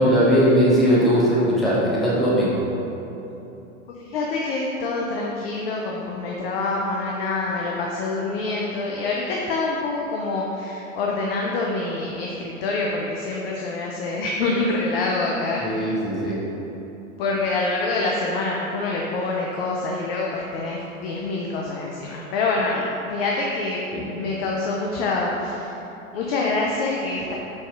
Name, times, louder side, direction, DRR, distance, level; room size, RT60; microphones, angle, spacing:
voice 1, 0.0-2.7 15.6-16.4 23.9-24.1, equal, ahead, -9 dB, 0.7 m, -19 dB
voice 2, 4.0-15.6 17.2-23.8 24.1-25.7 26.1-27.3, left 3 dB, 50° left, -2 dB, 0.5 m, -26 dB
5.4 x 4.1 x 2.4 m, 3.0 s
figure-of-eight pair, 100°, 41 cm